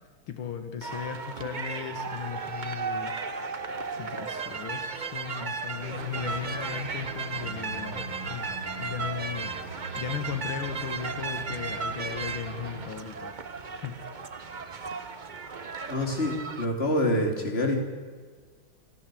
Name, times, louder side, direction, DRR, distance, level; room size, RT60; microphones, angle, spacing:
voice 1, 0.3-3.1 3.6-3.7 4.0-8.5 8.8-9.5 10.0-13.3 13.7-13.9, left 8 dB, 80° left, 7 dB, 2.2 m, -36 dB
sound 1, 0.8-16.6, right 4 dB, 40° right, 0.6 m, -35 dB
sound 2, 5.8-12.9, right 2 dB, 65° right, 3.7 m, -41 dB
voice 2, 15.9-17.8, left 1 dB, 30° left, 3 dB, 3.3 m, -26 dB
26.0 x 14.0 x 7.7 m, 1.5 s
omnidirectional pair, 2.3 m